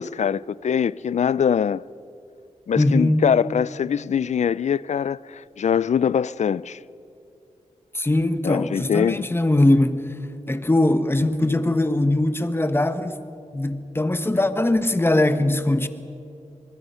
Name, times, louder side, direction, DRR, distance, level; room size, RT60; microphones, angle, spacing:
voice 1, 0.0-1.8 2.7-6.8 8.4-9.3, left 7 dB, 65° left, 0.4 m, -23 dB
voice 2, 2.7-3.2 7.9-10.0 10.5-13.2 13.5-15.9, left 1 dB, 20° left, 1.2 m, -21 dB
25.0 x 21.0 x 5.7 m
wide cardioid pair, 90°, 13 cm